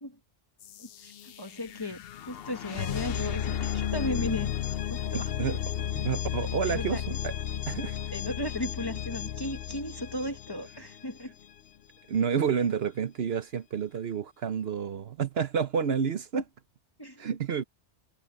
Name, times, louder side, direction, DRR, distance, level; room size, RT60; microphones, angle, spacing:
sound 1, 0.6-11.4, left 10 dB, 60° left, 0.8 m, -34 dB
voice 1, 0.8-4.5 4.9-5.3 6.6-7.0 8.1-11.3 17.0-17.3, left 1 dB, 20° left, 1.1 m, -36 dB
voice 2, 5.1-5.6 6.0-7.3 7.7-8.0 12.1-16.4 17.2-17.6, right 7 dB, 60° right, 1.0 m, -29 dB
omnidirectional pair, 1.2 m